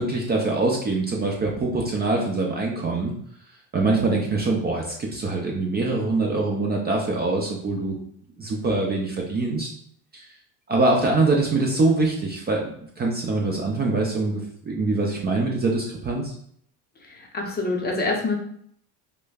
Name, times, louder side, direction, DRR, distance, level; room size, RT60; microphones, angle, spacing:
voice 1, 0.0-3.1 3.7-8.0 8.4-9.7 10.1-10.3 10.7-16.3, right 3 dB, 25° right, -1 dB, 0.5 m, -24 dB
voice 2, 17.0-18.4, left 2 dB, 25° left, 0 dB, 0.7 m, -26 dB
5.0 x 2.1 x 2.3 m, 0.65 s
cardioid pair, 120°, 41 cm